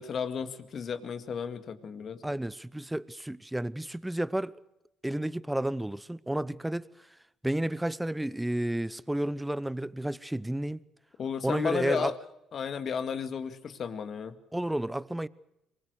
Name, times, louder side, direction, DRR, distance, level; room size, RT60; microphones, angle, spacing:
voice 1, 0.0-2.2 11.2-12.1 12.5-14.4, left 7 dB, 50° left, 2.2 m, -33 dB
voice 2, 2.2-4.5 5.0-7.1 7.4-10.8 11.4-12.1 14.5-15.3, right 1 dB, 5° right, 0.8 m, -31 dB
23.5 x 21.5 x 6.6 m
cardioid pair, 85°, 0 cm